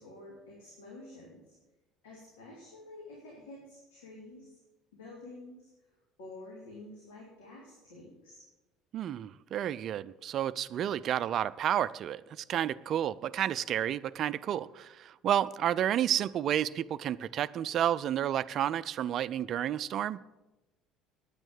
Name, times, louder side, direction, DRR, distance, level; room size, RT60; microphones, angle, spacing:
voice 1, 0.0-1.6 2.0-4.6 4.9-5.7 6.2-8.4, left 2 dB, 75° left, 3.0 m, -49 dB
voice 2, 8.9-20.2, right 10 dB, 50° right, 0.4 m, -31 dB
9.9 x 9.0 x 8.8 m
figure-of-eight pair, 60°, 0 cm